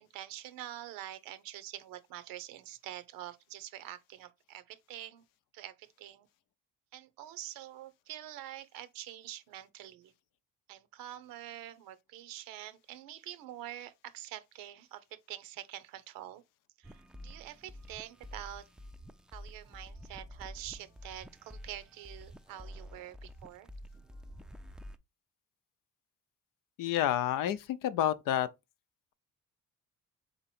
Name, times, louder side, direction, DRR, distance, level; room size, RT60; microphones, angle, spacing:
voice 1, 0.0-5.2 5.5-6.3 6.9-10.1 10.7-16.4 16.8-18.6 19.3-23.7, right 12 dB, 85° right, 0.7 m, -46 dB
sound 1, 16.8-25.0, equal, ahead, 0.4 m, -49 dB
voice 2, 26.8-28.5, left 11 dB, 75° left, 0.6 m, -29 dB
3.9 x 3.0 x 4.2 m
supercardioid pair, 75°, 33 cm